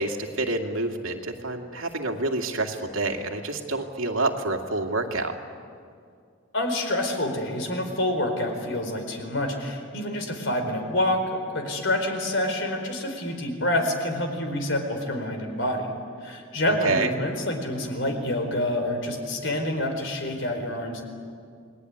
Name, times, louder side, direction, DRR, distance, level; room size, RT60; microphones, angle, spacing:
voice 1, 0.0-5.4 16.8-17.1, right 2 dB, 85° right, 3 dB, 2.5 m, -28 dB
voice 2, 6.5-15.9 16.2-21.0, left 1 dB, 65° left, 5 dB, 4.5 m, -27 dB
29.5 x 21.0 x 9.7 m, 2.2 s
head